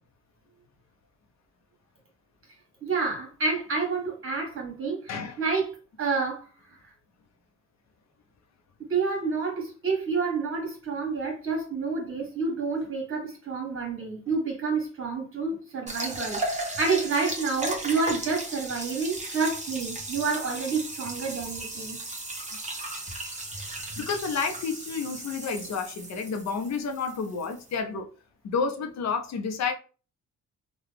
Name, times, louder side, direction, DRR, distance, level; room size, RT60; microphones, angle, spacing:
voice 1, 2.8-6.5 8.8-22.0, right 4 dB, 45° right, 1.5 m, -29 dB
voice 2, 5.1-5.4 24.0-28.1 28.4-29.7, left 5 dB, 60° left, 0.7 m, -30 dB
sound 1, 15.9-27.8, right 2 dB, 25° right, 1.1 m, -36 dB
2.9 x 2.3 x 3.4 m
cardioid pair, 90°, 30 cm